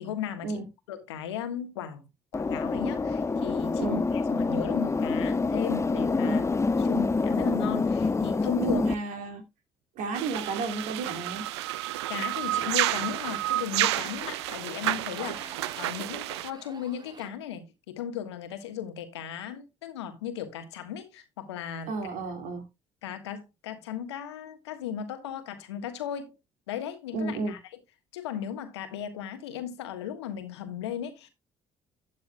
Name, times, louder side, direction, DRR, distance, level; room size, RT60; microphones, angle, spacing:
voice 1, 0.0-2.1 2.3-6.4 6.8-8.8 12.1-21.9 23.0-26.3 26.7-27.6 28.1-31.3, left 9 dB, 85° left, 1.4 m, -36 dB
sound 1, 2.3-8.9, left 4 dB, 20° left, 0.7 m, -26 dB
voice 2, 8.6-9.5 10.0-11.5 21.9-22.6 27.1-27.5, right 3 dB, 70° right, 2.4 m, -32 dB
sound 2, 10.1-16.5, right 16 dB, 85° right, 0.5 m, -30 dB
sound 3, 12.4-17.3, right 3 dB, 30° right, 1.8 m, -48 dB
12.0 x 8.3 x 2.2 m
hypercardioid pair, 55°, 14 cm